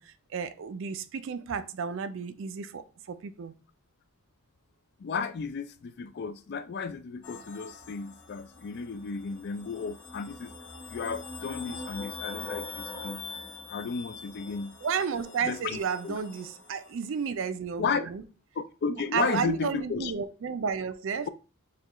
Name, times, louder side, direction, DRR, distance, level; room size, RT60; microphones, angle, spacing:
voice 1, 0.0-2.8 3.1-3.5 14.8-18.2 18.9-21.3, right 6 dB, 60° right, 0.4 m, -32 dB
voice 2, 5.0-10.5 10.9-13.3 13.7-14.8 15.4-16.2 17.8-18.1 18.6-20.1, left 5 dB, 50° left, 0.3 m, -34 dB
sound 1, 7.2-16.9, left 3 dB, 65° left, 1.7 m, -43 dB
6.6 x 2.3 x 2.9 m
head